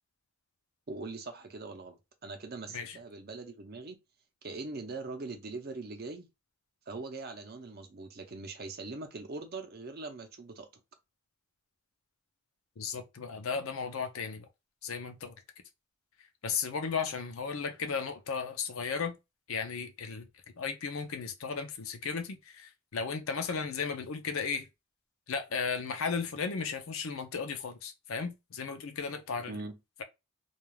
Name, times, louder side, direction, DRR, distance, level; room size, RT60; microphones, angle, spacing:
voice 1, 0.9-4.0 4.4-6.3 6.9-10.7 29.5-29.8, right 3 dB, 45° right, 0.6 m, -41 dB
voice 2, 12.8-14.5 14.8-15.3 16.4-19.2 19.5-20.3 20.6-24.7 25.3-29.5, left 5 dB, 75° left, 0.5 m, -35 dB
2.3 x 2.3 x 3.1 m
head